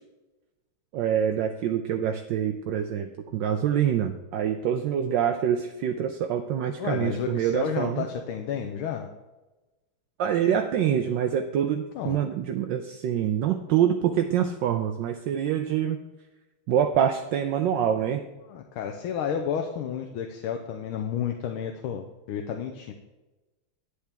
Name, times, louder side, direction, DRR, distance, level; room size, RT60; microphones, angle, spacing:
voice 1, 0.9-8.0 10.2-16.0 16.7-18.2, right 9 dB, 75° right, 6 dB, 1.1 m, -25 dB
voice 2, 6.8-9.1 11.9-12.2 18.5-22.9, left 8 dB, 90° left, 4 dB, 1.5 m, -31 dB
10.0 x 8.1 x 3.5 m, 1.1 s
omnidirectional pair, 2.3 m